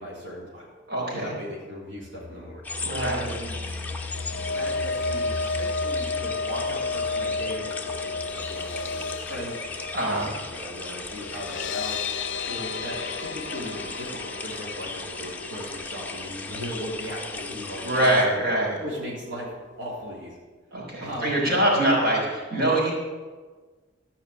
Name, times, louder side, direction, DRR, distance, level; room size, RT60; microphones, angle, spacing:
voice 1, 0.0-0.7 1.1-2.7 3.0-3.6 4.5-9.6 10.0-12.0 12.5-14.9 15.2-18.2 18.8-19.5 19.8-20.4 21.0-21.6, equal, 80° right, -7 dB, 3.5 m, -37 dB
voice 2, 0.9-1.3 2.8-3.3 9.9-10.3 17.8-18.8 20.7-22.9, right 1 dB, 55° right, -3 dB, 4.2 m, -23 dB
sound 1, 1.9-12.6 12.9-13.0 13.3-13.4, left 2 dB, 35° right, 3.5 m, -40 dB
sound 2, 2.6-18.2, left 3 dB, 10° left, 0.9 m, -37 dB
sound 3, 3.8-18.0 18.4-18.6 18.9-19.0, left 4 dB, 65° left, 0.6 m, -33 dB
14.0 x 5.6 x 8.4 m, 1.4 s
head